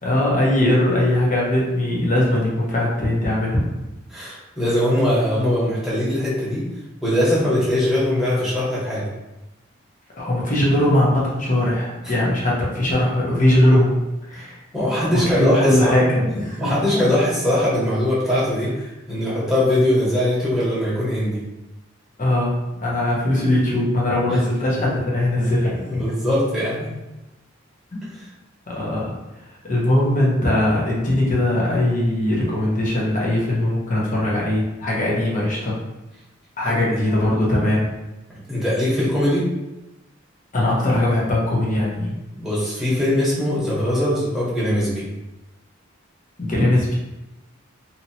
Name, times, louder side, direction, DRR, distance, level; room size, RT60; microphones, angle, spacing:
voice 1, 0.0-3.7 10.2-14.6 15.1-16.8 22.2-22.5 22.8-26.1 27.9-28.0 28.7-29.2 29.7-35.8 36.6-37.9 40.5-42.2 46.4-46.9, left 1 dB, 40° left, -4 dB, 0.9 m, -20 dB
voice 2, 4.1-6.6 7.0-9.1 14.3-14.4 14.7-15.9 16.6-18.7 19.1-21.4 25.9-27.0 28.1-28.2 36.7-36.8 38.5-39.5 42.3-45.0, left 1 dB, ahead, -9 dB, 1.1 m, -21 dB
2.9 x 2.8 x 2.8 m, 0.99 s
head